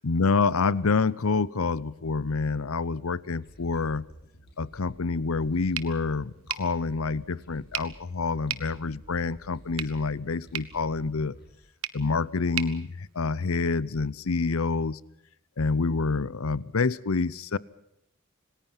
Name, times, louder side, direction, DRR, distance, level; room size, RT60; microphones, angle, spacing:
voice 1, 0.0-4.1 4.6-11.4 11.9-15.0 15.6-17.6, left 4 dB, 80° left, 21 dB, 0.7 m, -27 dB
sound 1, 3.4-11.5, equal, 50° left, 5.5 m, -53 dB
sound 2, 5.7-13.8, right 11 dB, 85° right, 1.3 m, -40 dB
27.0 x 19.5 x 5.7 m, 0.79 s
head